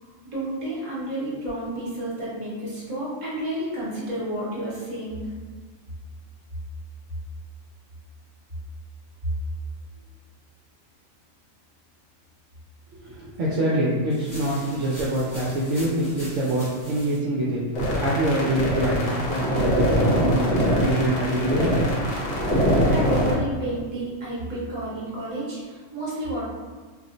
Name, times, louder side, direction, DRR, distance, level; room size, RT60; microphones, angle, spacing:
voice 1, 0.3-5.3 22.9-26.4, right 1 dB, 35° right, -8 dB, 1.1 m, -30 dB
voice 2, 12.9-17.6 18.0-21.7, right 1 dB, 70° right, -6 dB, 0.8 m, -25 dB
sound 1, 14.1-17.2, equal, 20° left, 0.5 m, -42 dB
sound 2, 17.7-23.3, equal, 55° left, 0.8 m, -23 dB
2.5 x 2.0 x 3.7 m, 1.4 s
omnidirectional pair, 1.4 m